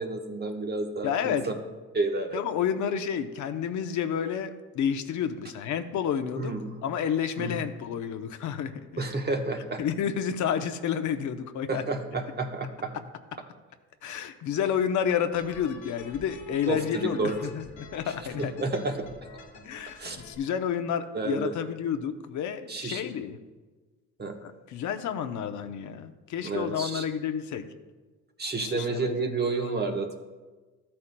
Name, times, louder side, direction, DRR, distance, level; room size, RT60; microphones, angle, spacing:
voice 1, 0.0-1.4 1.9-2.4 6.4-6.8 7.4-7.6 9.0-9.8 11.7-12.9 16.7-17.4 18.0-19.1 20.0-20.2 21.1-21.5 22.7-23.0 24.2-24.4 26.4-27.0 28.4-30.2, right 3 dB, 35° right, 3 dB, 1.2 m, -30 dB
voice 2, 1.0-1.5 2.3-6.5 6.8-9.0 9.8-11.8 14.0-18.5 19.6-23.4 24.4-27.6 28.6-29.9, left 8 dB, 75° left, 8 dB, 0.8 m, -30 dB
sound 1, 15.3-20.3, left 4 dB, 90° left, 1.6 m, -48 dB
13.5 x 8.6 x 2.2 m, 1.3 s
cardioid pair, 90°, 30 cm